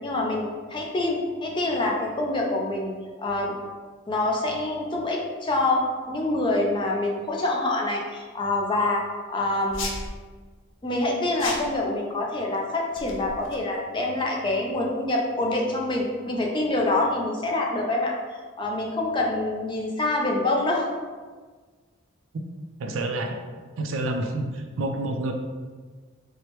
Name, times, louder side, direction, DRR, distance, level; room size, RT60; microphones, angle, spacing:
voice 1, 0.0-2.9 3.2-3.5 4.1-9.0 9.3-10.0 10.8-18.1 18.6-20.9 22.9-23.0, left 2 dB, 25° left, -1 dB, 0.4 m, -26 dB
sound 1, 9.7-10.1 11.4-11.8 12.9-13.6, left 2 dB, 70° left, 0.6 m, -34 dB
voice 2, 22.8-23.3 23.8-25.3, right 2 dB, 80° right, 4 dB, 0.4 m, -28 dB
4.6 x 2.1 x 2.9 m, 1.5 s
head